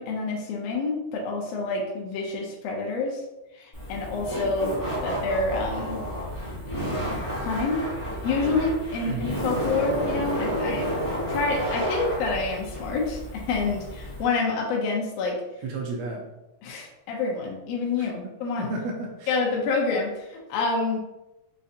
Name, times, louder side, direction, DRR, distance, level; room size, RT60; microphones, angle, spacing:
voice 1, 0.0-3.2 3.6-4.8 5.0-6.0 7.4-7.9 8.2-10.9 11.3-15.4 16.6-18.7 19.3-21.0, left 3 dB, 80° left, -1 dB, 1.4 m, -27 dB
Laughter, 3.7-14.2, equal, 55° left, 0.7 m, -31 dB
voice 2, 15.6-16.3 18.0-18.3 18.6-19.4, right 3 dB, 80° right, 0 dB, 1.5 m, -33 dB
5.3 x 2.4 x 2.6 m, 0.99 s
omnidirectional pair, 3.6 m